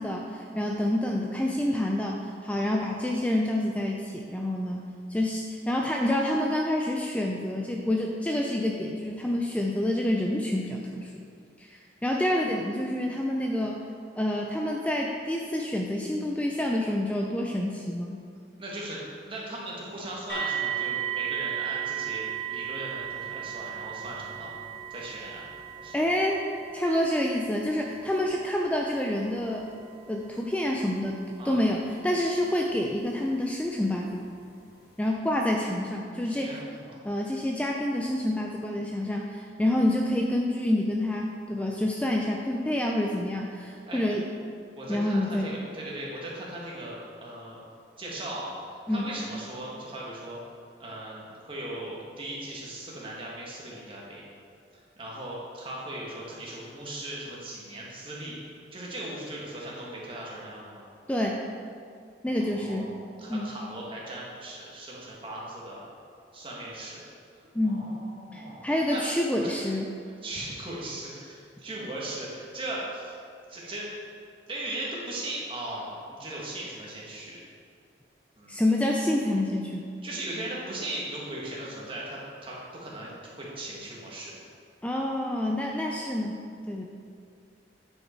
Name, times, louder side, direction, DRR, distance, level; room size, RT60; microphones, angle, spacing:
voice 1, 0.0-4.8 5.1-11.1 11.6-13.8 14.2-18.2 25.9-26.4 26.7-29.7 30.1-31.2 31.4-34.3 35.0-36.6 37.0-44.3 44.9-45.5 48.9-49.1 61.1-61.4 62.2-62.9 63.3-63.6 67.5-67.8 68.3-69.9 78.5-79.8 84.8-86.4 86.7-86.8, left 1 dB, 10° left, 0 dB, 0.4 m, -28 dB
voice 2, 18.6-19.0 19.3-24.5 24.9-25.4 25.8-26.1 31.4-31.6 36.2-36.9 43.9-44.0 44.7-47.6 48.0-48.5 48.9-50.4 50.8-54.3 55.0-58.4 58.7-60.9 62.4-65.8 66.3-67.1 67.7-69.0 69.4-69.6 70.2-73.1 73.5-73.9 74.5-77.4 78.3-78.6 80.0-84.5, right 1 dB, 30° right, -5 dB, 1.7 m, -38 dB
sound 1, 20.3-33.2 34.0-34.1 34.7-34.8, right 11 dB, 60° left, 2.0 m, -36 dB
9.2 x 5.5 x 4.4 m, 2.3 s
head